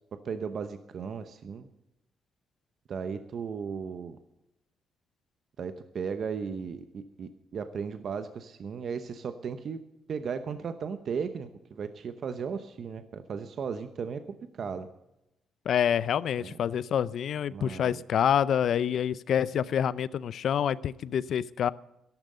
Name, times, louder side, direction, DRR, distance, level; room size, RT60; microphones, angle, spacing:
voice 1, 0.1-1.7 2.9-4.2 5.6-9.8 10.1-14.2 14.5-14.9 16.4-16.6 17.5-18.0, right 6 dB, 50° right, 10 dB, 0.8 m, -36 dB
voice 2, 15.7-21.7, left 9 dB, 60° left, 19 dB, 0.5 m, -27 dB
13.0 x 12.0 x 6.7 m, 0.88 s
cardioid pair, 125°, 0 cm